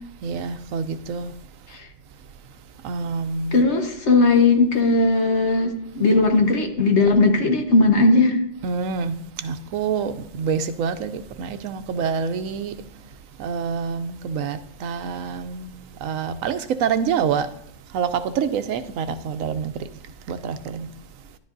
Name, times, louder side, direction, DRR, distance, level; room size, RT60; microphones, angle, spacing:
voice 1, 0.2-1.3 2.8-3.6 8.6-9.2 9.4-12.7 13.4-15.7 16.0-17.5 17.9-19.7 20.3-20.9, right 6 dB, 85° right, 1.1 m, -26 dB
voice 2, 3.5-8.4, left 3 dB, 60° left, 1.5 m, -18 dB
12.5 x 11.0 x 2.6 m
omnidirectional pair, 1.3 m